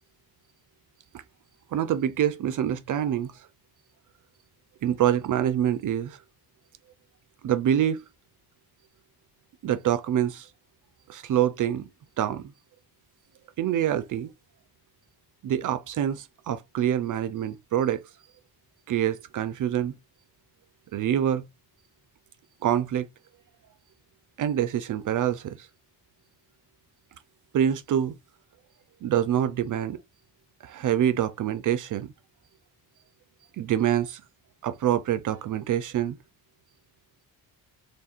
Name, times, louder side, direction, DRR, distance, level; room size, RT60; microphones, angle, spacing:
voice 1, 1.7-3.5 4.8-6.2 7.4-8.0 9.6-10.5 11.1-11.9 12.2-12.4 13.6-14.3 15.4-18.0 18.9-19.9 20.9-21.4 22.6-23.1 24.4-25.7 27.5-28.1 29.0-30.0 30.6-32.1 33.6-34.2 34.6-36.2, right 10 dB, 55° right, 0.5 m, -26 dB
3.1 x 2.4 x 4.2 m
cardioid pair, 110°, 38 cm